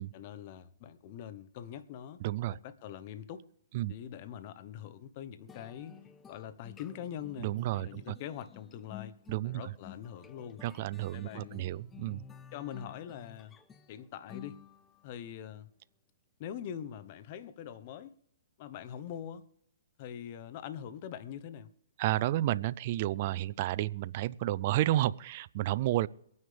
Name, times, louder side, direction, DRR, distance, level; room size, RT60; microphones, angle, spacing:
voice 1, 0.1-2.2 2.5-3.4 3.9-6.0 6.3-9.2 9.4-10.6 11.1-11.7 12.5-13.6 13.9-14.6 15.0-15.7 16.4-18.1 18.6-19.5 20.0-21.7, left 9 dB, 40° left, 1.0 m, -43 dB
voice 2, 2.2-2.6 3.7-3.9 7.4-8.1 9.3-9.6 10.6-12.2 22.0-26.1, right 15 dB, 45° right, 0.4 m, -31 dB
sound 1, 5.5-15.1, left 9 dB, 15° left, 0.6 m, -53 dB
23.5 x 9.6 x 3.4 m
hypercardioid pair, 140°, 0 cm